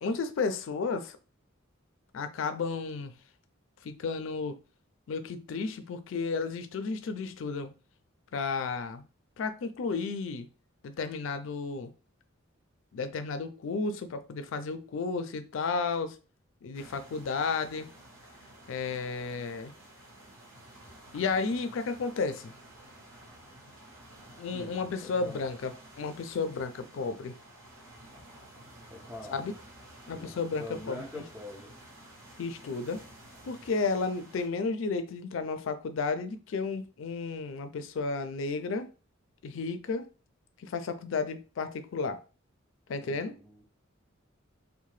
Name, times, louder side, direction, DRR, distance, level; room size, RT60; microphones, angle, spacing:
voice 1, 0.0-1.2 2.1-3.1 3.8-4.6 5.1-7.7 8.3-9.1 9.4-10.5 10.8-11.9 12.9-16.2 16.6-17.9 18.7-19.7 21.1-22.5 24.4-27.4 29.3-29.5 30.1-31.2 32.4-33.0 33.4-38.9 39.4-40.1 40.6-42.2 42.9-43.4, left 4 dB, 65° left, 0.4 m, -33 dB
sound 1, 16.7-34.5, right 1 dB, 70° right, 0.9 m, -52 dB
voice 2, 24.5-25.4 28.9-29.5 30.1-31.7 43.0-43.6, left 1 dB, 10° right, 0.4 m, -44 dB
2.7 x 2.1 x 3.1 m
head